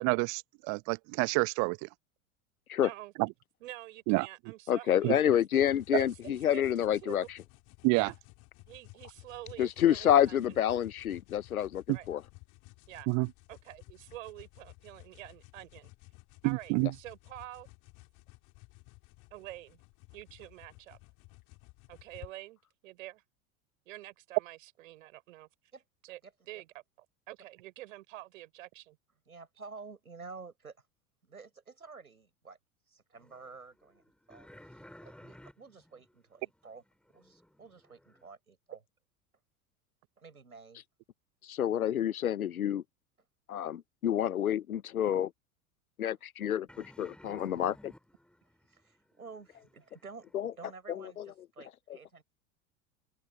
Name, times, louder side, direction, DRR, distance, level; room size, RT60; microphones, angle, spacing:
voice 1, 0.0-1.9 3.2-3.3 4.1-4.3 5.0-5.2 7.8-8.1 11.9-12.0 13.1-13.3 16.4-16.9, right 32 dB, 45° right, 1.2 m, -28 dB
voice 2, 2.8-3.1 3.6-5.7 6.0-7.3 7.9-8.1 8.7-10.6 11.9-12.1 12.9-13.1 13.5-15.9 16.4-17.7 19.3-19.8 20.1-21.0 21.9-23.2 23.9-25.5 26.0-26.2 26.5-29.0, right 16 dB, 60° right, 4.1 m, -47 dB
voice 3, 4.7-7.2 9.6-12.2 41.4-42.8 43.5-45.3 46.0-47.9 50.3-50.5 50.9-51.3, left 10 dB, 75° left, 0.9 m, -28 dB
sound 1, 5.6-22.3, left 25 dB, 45° left, 3.8 m, -55 dB
voice 4, 29.3-30.8 31.2-32.6 32.9-34.0 34.3-36.8 37.1-38.8 40.2-40.8 48.7-52.2, right 4 dB, 85° right, 6.2 m, -51 dB
sound 2, 33.1-38.3 46.7-50.3, left 1 dB, ahead, 7.5 m, -57 dB
open air
figure-of-eight pair, 80°, 43 cm